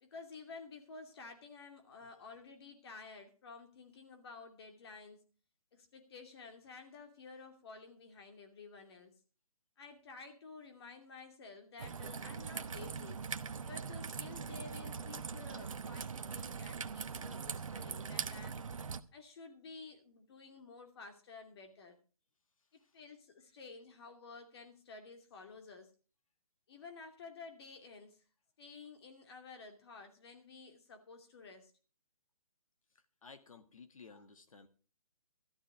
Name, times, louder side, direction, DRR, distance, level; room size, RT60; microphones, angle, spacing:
voice 1, 0.0-5.2 5.7-9.1 9.8-13.2 13.6-18.7 19.1-22.0 22.9-25.9 26.7-28.2 28.6-31.7 34.1-34.2, left 4 dB, 45° left, 5 dB, 2.6 m, -52 dB
Raindrop / Trickle dribble, 11.8-19.0, right 6 dB, 60° right, 1.1 m, -42 dB
voice 2, 22.6-23.0 23.4-23.6 32.9-34.7, left 4 dB, 65° left, 8 dB, 1.9 m, -57 dB
14.0 x 11.5 x 4.8 m, 0.36 s
figure-of-eight pair, 145°, 19 cm